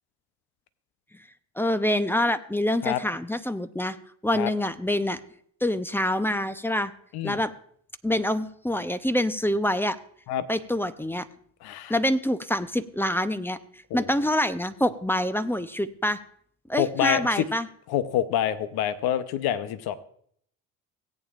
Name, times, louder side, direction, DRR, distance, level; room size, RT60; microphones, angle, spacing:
voice 1, 1.6-4.0 4.2-5.2 5.6-6.9 7.2-7.5 8.0-10.0 10.5-11.3 11.9-13.6 13.9-16.2 16.7-17.7, left 1 dB, 5° left, 12 dB, 0.7 m, -26 dB
voice 2, 11.6-11.9 13.9-14.1 16.8-17.4 17.9-20.0, left 10 dB, 60° left, 13 dB, 0.9 m, -27 dB
17.5 x 8.8 x 2.5 m, 0.62 s
hypercardioid pair, 60°, 43 cm